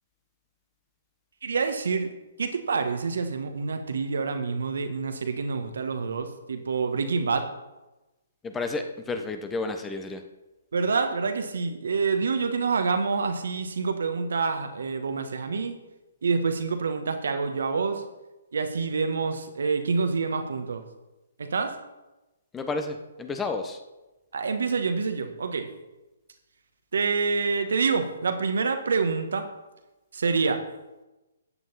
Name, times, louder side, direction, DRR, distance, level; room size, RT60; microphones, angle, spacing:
voice 1, 1.4-2.1 2.4-7.5 10.7-15.8 16.2-18.0 18.5-20.8 21.4-21.8 24.3-25.7 26.9-29.5 30.1-30.6, right 4 dB, 65° right, 7 dB, 1.4 m, -27 dB
voice 2, 8.4-10.2 22.5-23.8, left 3 dB, 10° left, 7 dB, 1.1 m, -31 dB
14.5 x 9.3 x 4.2 m, 1.0 s
figure-of-eight pair, 130°, 0 cm